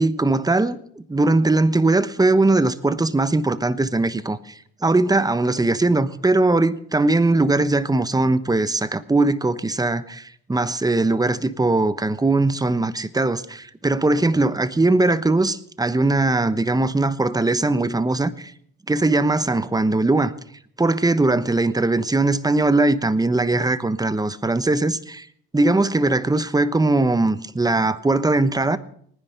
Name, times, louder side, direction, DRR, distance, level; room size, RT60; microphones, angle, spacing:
voice 1, 0.0-18.5 18.9-20.3 20.8-25.3 25.5-28.8, right 2 dB, 15° right, 1.0 m, -20 dB
18.5 x 10.0 x 6.6 m
supercardioid pair, 75°, 29 cm